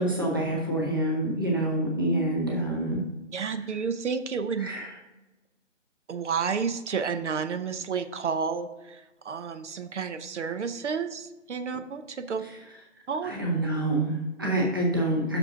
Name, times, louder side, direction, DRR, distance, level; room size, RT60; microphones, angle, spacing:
voice 1, 0.0-3.0 4.6-4.9 13.2-15.4, right 1 dB, 20° right, -2 dB, 0.7 m, -27 dB
voice 2, 3.3-4.7 6.1-12.4 13.1-13.3, right 6 dB, 70° right, 10 dB, 0.7 m, -31 dB
6.2 x 5.2 x 5.6 m, 1.0 s
hypercardioid pair, 180°, 37 cm